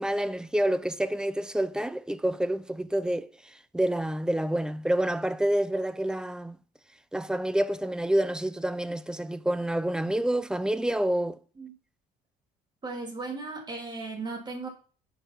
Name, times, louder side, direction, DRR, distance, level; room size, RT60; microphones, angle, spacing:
voice 1, 0.0-3.3 3.7-6.6 7.1-11.4, right 1 dB, 5° right, 0.5 m, -28 dB
voice 2, 12.8-14.7, right 3 dB, 25° right, 2.8 m, -36 dB
10.0 x 4.9 x 5.7 m
cardioid pair, 110°, 17 cm